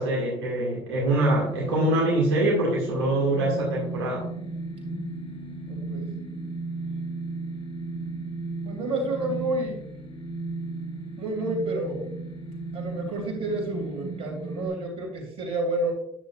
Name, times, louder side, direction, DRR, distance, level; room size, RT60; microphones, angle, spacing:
voice 1, 0.0-4.3, right 1 dB, 80° right, -5 dB, 2.1 m, -24 dB
sound 1, 1.4-14.7, right 3 dB, 45° left, 2.4 m, -35 dB
voice 2, 5.7-6.1 8.6-9.8 11.2-12.1 12.7-15.9, right 2 dB, 55° right, 1 dB, 3.1 m, -30 dB
10.0 x 6.8 x 2.5 m, 0.75 s
hypercardioid pair, 65°, 12 cm